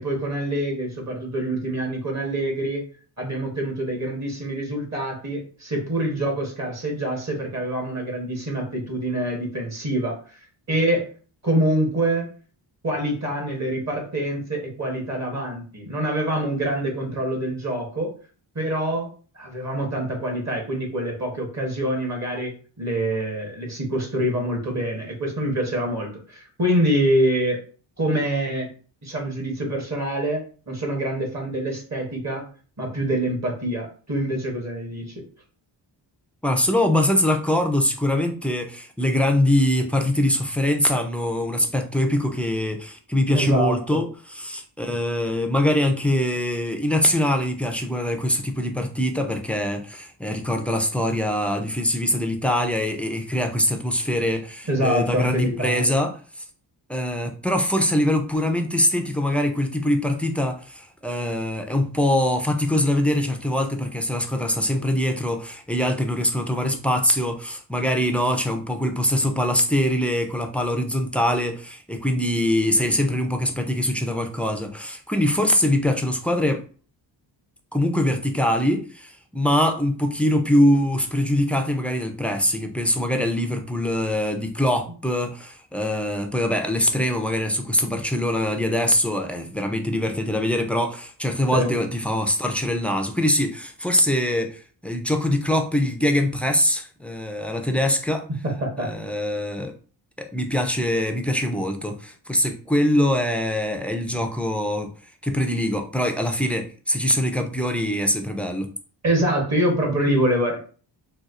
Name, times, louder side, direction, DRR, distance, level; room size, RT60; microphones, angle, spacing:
voice 1, 0.0-2.8 3.2-10.1 10.7-11.1 11.4-12.3 12.8-18.1 18.5-19.1 19.3-22.5 22.8-27.6 28.0-28.7 29.0-32.4 32.8-35.1 43.3-44.0 54.7-55.9 91.5-91.7 98.4-98.9 109.0-110.6, right 1 dB, 35° right, 2 dB, 1.0 m, -25 dB
voice 2, 36.4-44.1 44.3-56.1 56.4-56.5 56.9-76.6 77.7-98.2 98.8-99.7 100.2-104.9 105.2-108.7, left 1 dB, 5° left, 4 dB, 0.3 m, -23 dB
4.1 x 2.3 x 2.4 m, 0.40 s
cardioid pair, 90°, 47 cm